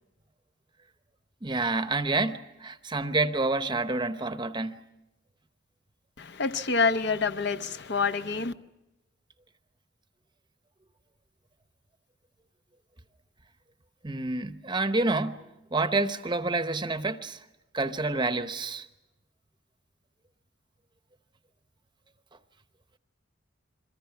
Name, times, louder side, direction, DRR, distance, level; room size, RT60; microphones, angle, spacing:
voice 1, 1.4-4.8 14.0-15.4 15.7-17.4 17.7-18.9, right 3 dB, 25° right, 0.9 m, -28 dB
voice 2, 6.2-8.5, left 4 dB, 60° left, 0.8 m, -27 dB
29.5 x 22.5 x 5.9 m
head